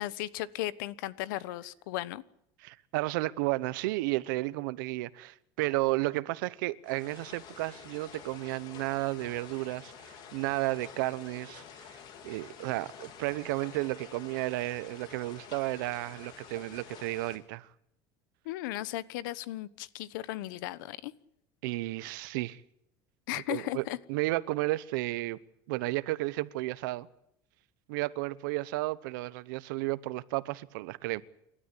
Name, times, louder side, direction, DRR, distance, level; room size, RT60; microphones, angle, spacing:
voice 1, 0.0-2.2 18.4-21.1 23.3-24.0, left 16 dB, 90° left, 1.1 m, -36 dB
voice 2, 2.6-11.6 12.2-17.7 21.6-22.6 23.5-25.4 25.7-27.1 27.9-31.2, right 20 dB, 90° right, 1.0 m, -33 dB
sound 1, 6.8-17.4, left 7 dB, 45° left, 3.5 m, -49 dB
28.5 x 13.0 x 9.9 m
cardioid pair, 155°, 10 cm